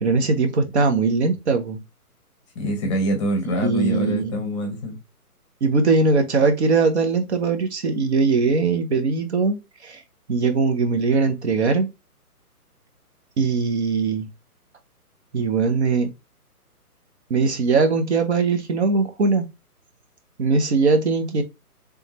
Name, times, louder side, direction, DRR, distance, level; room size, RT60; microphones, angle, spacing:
voice 1, 0.0-1.8 3.6-4.4 5.6-9.6 9.8-10.0 10.3-11.9 13.4-14.3 15.3-16.1 17.3-19.4 20.4-21.4, right 4 dB, 45° right, 0.9 m, -20 dB
voice 2, 2.5-5.0, right 1 dB, 20° left, 0.8 m, -25 dB
3.6 x 3.4 x 3.0 m
figure-of-eight pair, 135°, 46 cm